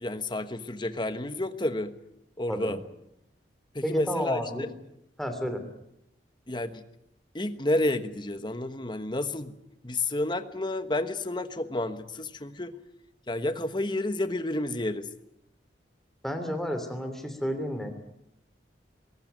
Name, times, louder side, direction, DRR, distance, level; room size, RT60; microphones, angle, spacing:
voice 1, 0.0-1.9 2.4-2.8 3.7-4.7 6.5-6.8 7.3-9.6 9.8-12.7 13.3-15.1, left 1 dB, 25° left, 10 dB, 1.3 m, -30 dB
voice 2, 3.8-4.7 5.2-5.6 16.2-17.9, equal, ahead, 7 dB, 3.0 m, -31 dB
21.5 x 18.5 x 9.2 m, 0.81 s
head